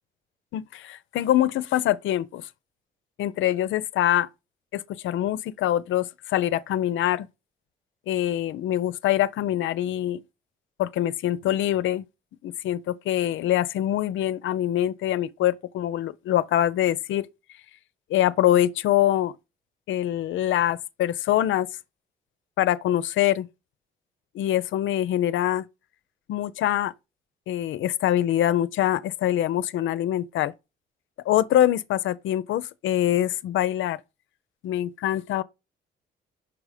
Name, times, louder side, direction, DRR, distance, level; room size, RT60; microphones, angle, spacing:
voice 1, 0.5-2.5 3.2-4.3 4.7-7.3 8.1-10.2 10.8-12.1 12.4-17.3 18.1-19.3 19.9-21.7 22.6-23.5 24.3-25.6 26.3-26.9 27.5-30.5 31.3-34.0 34.6-35.4, left 12 dB, 75° left, 0.5 m, -24 dB
6.0 x 4.9 x 4.9 m
cardioid pair, 90°, 20 cm